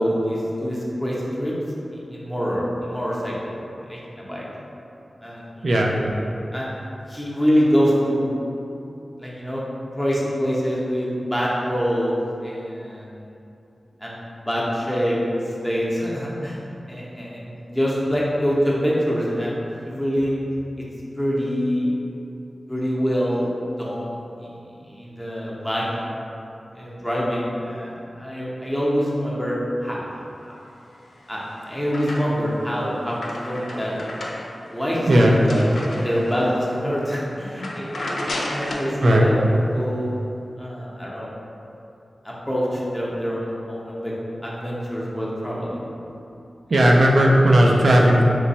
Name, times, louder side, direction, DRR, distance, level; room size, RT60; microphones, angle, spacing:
voice 1, 0.0-1.5 1.9-3.6 3.9-4.4 5.2-5.7 6.5-6.8 7.1-8.3 9.2-9.6 10.0-12.1 12.4-13.1 14.0-16.6 16.9-20.4 21.2-21.9 22.7-23.5 23.8-24.5 24.8-25.9 26.7-29.5 29.8-30.6 31.3-34.0 34.7-39.4 39.7-40.1 40.6-41.3 42.2-44.1 44.4-45.8, equal, 5° left, -6 dB, 0.6 m, -25 dB
voice 2, 5.6-6.1 25.0-25.1 27.0-27.1 35.1-35.4 39.0-39.3 45.7-46.3 46.7-48.2, equal, 65° right, -1 dB, 0.4 m, -17 dB
sound 1, 31.0-32.6 32.9-36.6 37.0-37.2 37.5-38.9, left 1 dB, 75° left, 0.4 m, -33 dB
3.0 x 2.2 x 4.0 m, 2.8 s
wide cardioid pair, 100°, 0 cm